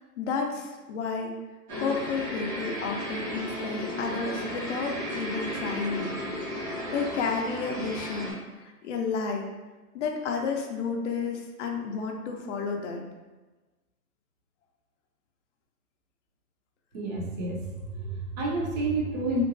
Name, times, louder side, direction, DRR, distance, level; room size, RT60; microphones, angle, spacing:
voice 1, 0.0-1.4 1.7-6.1 6.5-6.6 6.9-9.5 9.9-13.0, left 5 dB, 55° left, 2 dB, 0.5 m, -31 dB
sound 1, 1.7-8.3, equal, 85° right, 1.4 m, -34 dB
voice 2, 16.9-19.4, right 2 dB, 30° right, -2 dB, 0.5 m, -30 dB
2.9 x 2.2 x 2.5 m, 1.2 s
hypercardioid pair, 125°, 46 cm